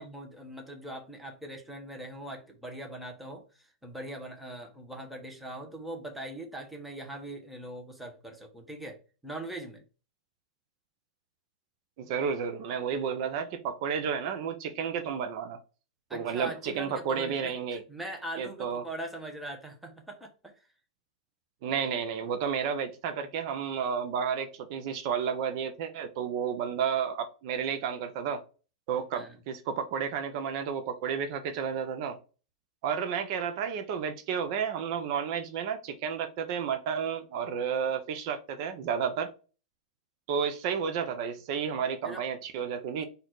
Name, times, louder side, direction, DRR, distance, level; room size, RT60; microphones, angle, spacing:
voice 1, 0.0-9.8 16.1-20.5 29.1-29.4 42.0-42.2 42.9-43.0, right 1 dB, ahead, 1.1 m, -41 dB
voice 2, 12.0-15.6 16.1-17.8 18.4-18.8 21.6-28.4 28.9-32.2 32.8-39.3 40.3-43.0, right 7 dB, 50° right, 0.7 m, -31 dB
4.2 x 2.7 x 4.5 m
hypercardioid pair, 130°, 4 cm